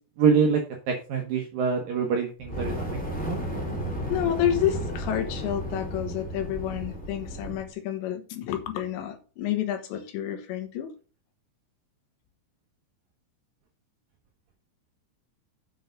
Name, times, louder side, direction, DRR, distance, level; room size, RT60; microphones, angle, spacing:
voice 1, 0.2-0.6 0.9-3.4, right 6 dB, 70° right, 2.2 m, -25 dB
Fire, 2.4-7.7, equal, 5° left, 0.6 m, -33 dB
voice 2, 4.1-10.9, left 11 dB, 75° left, 3.2 m, -29 dB
8.0 x 6.3 x 5.2 m
omnidirectional pair, 5.6 m